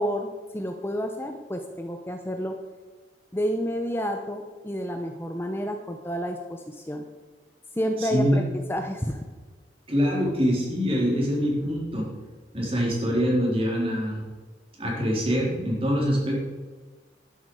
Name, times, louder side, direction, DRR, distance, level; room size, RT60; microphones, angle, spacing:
voice 1, 0.0-2.5 3.3-7.0 7.7-8.4 8.7-9.3, equal, 15° left, 4 dB, 0.7 m, -30 dB
voice 2, 8.0-8.4 9.9-12.1 12.5-14.2 14.8-16.4, equal, 30° right, -2 dB, 3.8 m, -24 dB
12.0 x 11.0 x 4.9 m, 1.3 s
head